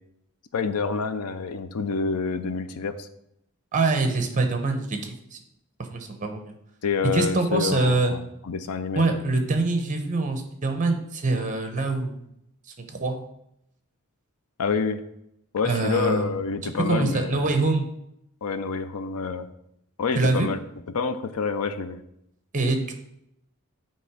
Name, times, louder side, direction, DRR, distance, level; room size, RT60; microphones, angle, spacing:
voice 1, 0.5-3.1 6.8-9.1 14.6-15.0 15.5-17.5 18.4-19.5 20.0-20.6 20.9-22.0, left 5 dB, 85° left, 11 dB, 0.5 m, -27 dB
voice 2, 3.7-5.4 5.9-6.5 7.1-8.1 8.9-12.2 12.9-13.2 15.6-16.3 16.6-17.9 20.2-20.5 22.5-23.0, right 3 dB, 35° right, 5 dB, 0.9 m, -24 dB
7.6 x 3.0 x 4.8 m, 0.78 s
head